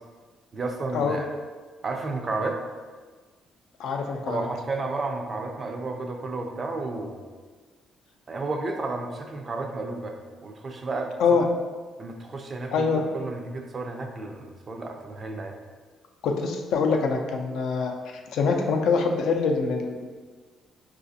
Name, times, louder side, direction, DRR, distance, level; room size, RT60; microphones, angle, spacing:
voice 1, 0.5-1.3 1.8-2.6 4.3-7.2 8.3-11.1 12.0-15.6, right 3 dB, 30° right, 3 dB, 0.3 m, -32 dB
voice 2, 3.8-4.5 11.2-11.5 12.7-13.1 16.2-18.0 18.3-20.1, left 5 dB, 70° left, 3 dB, 0.4 m, -24 dB
4.7 x 2.4 x 2.6 m, 1.5 s
cardioid pair, 150°, 0 cm